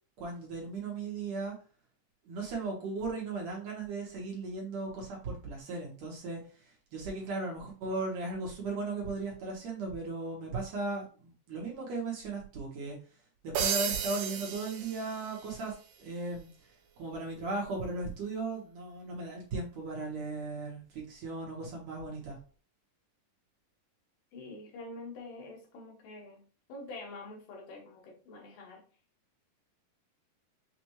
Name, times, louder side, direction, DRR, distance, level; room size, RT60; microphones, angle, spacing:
voice 1, 0.2-1.6 2.3-13.0 13.4-16.5 17.0-22.4, right 3 dB, 60° right, 2.1 m, -37 dB
sound 1, 13.5-15.6, right 7 dB, 80° right, 1.6 m, -34 dB
voice 2, 24.3-26.4 26.7-28.8, left 2 dB, 80° left, 2.6 m, -46 dB
6.3 x 2.5 x 3.0 m
omnidirectional pair, 3.8 m